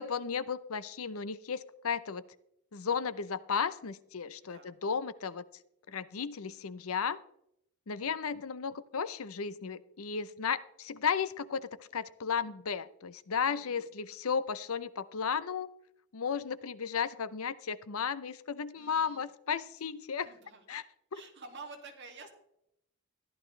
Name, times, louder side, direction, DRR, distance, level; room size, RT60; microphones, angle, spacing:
voice 1, 0.0-2.2 2.7-5.4 5.9-7.2 7.9-15.7 16.1-20.3 20.7-20.8, left 6 dB, 75° left, 15 dB, 0.6 m, -34 dB
voice 2, 4.4-4.7 13.4-13.8 18.7-19.2 19.8-19.9 20.3-20.6 21.1-22.3, right 4 dB, 50° right, 2 dB, 2.5 m, -50 dB
14.0 x 11.5 x 3.3 m, 0.76 s
head